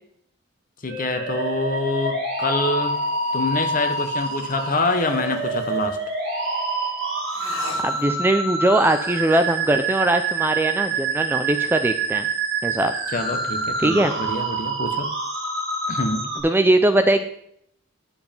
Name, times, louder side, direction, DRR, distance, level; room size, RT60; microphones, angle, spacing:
voice 1, 0.8-2.9 3.3-6.0 13.1-15.1 15.9-16.3, left 2 dB, 40° left, 6 dB, 1.2 m, -25 dB
sound 1, 0.9-16.4, right 3 dB, 55° right, 3.6 m, -26 dB
sound 2, 2.8-6.2 7.3-8.4, left 2 dB, 60° left, 2.4 m, -41 dB
voice 2, 7.8-12.3 12.6-12.9 13.8-14.1 16.4-17.2, right 1 dB, 10° right, 8 dB, 0.4 m, -20 dB
9.8 x 7.1 x 5.4 m, 0.70 s
head